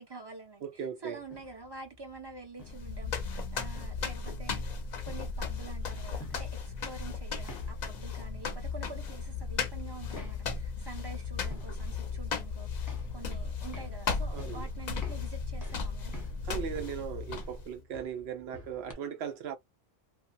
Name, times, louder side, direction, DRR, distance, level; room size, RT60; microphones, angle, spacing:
voice 1, 0.0-4.6 5.0-16.1, right 3 dB, 25° right, 0.8 m, -47 dB
voice 2, 0.6-1.2 14.3-14.7 16.4-19.6, right 8 dB, 75° right, 0.9 m, -38 dB
sound 1, 1.2-18.9, left 2 dB, 20° left, 0.9 m, -51 dB
sound 2, 2.6-17.8, left 5 dB, 55° left, 0.6 m, -36 dB
2.7 x 2.1 x 2.4 m
omnidirectional pair, 1.1 m